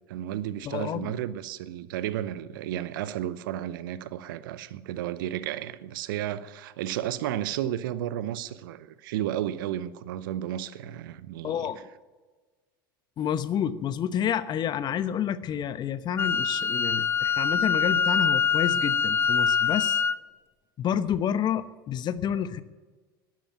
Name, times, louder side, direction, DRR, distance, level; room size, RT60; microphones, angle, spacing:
voice 1, 0.1-11.7, right 12 dB, 65° right, 0.8 m, -33 dB
voice 2, 0.6-1.2 11.4-11.9 13.2-20.0 20.8-22.6, left 9 dB, 40° left, 0.9 m, -29 dB
Wind instrument woodwind instrument, 16.2-20.2, left 6 dB, 20° left, 0.6 m, -24 dB
12.5 x 10.5 x 9.2 m
figure-of-eight pair, 75°, 12 cm